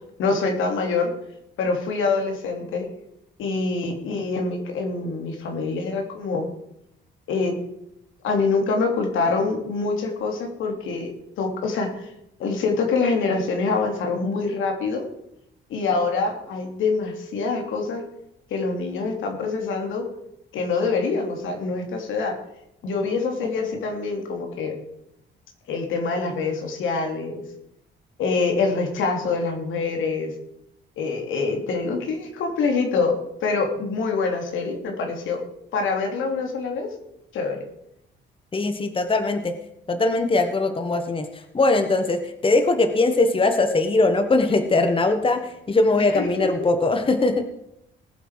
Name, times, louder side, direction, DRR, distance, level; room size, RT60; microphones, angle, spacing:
voice 1, 0.2-1.1 1.6-2.9 3.4-6.5 7.3-7.6 8.2-11.1 11.4-12.1 12.4-15.0 15.7-18.0 18.5-20.1 20.5-22.4 22.8-24.8 25.7-27.4 28.2-30.3 31.0-33.1 33.4-35.4 35.7-36.9 37.3-37.6 46.1-46.5, left 4 dB, 80° left, 3 dB, 3.0 m, -25 dB
voice 2, 38.5-39.5 39.9-47.5, left 2 dB, 25° left, 8 dB, 1.4 m, -21 dB
19.5 x 7.9 x 4.9 m, 0.81 s
cardioid pair, 90°, 20 cm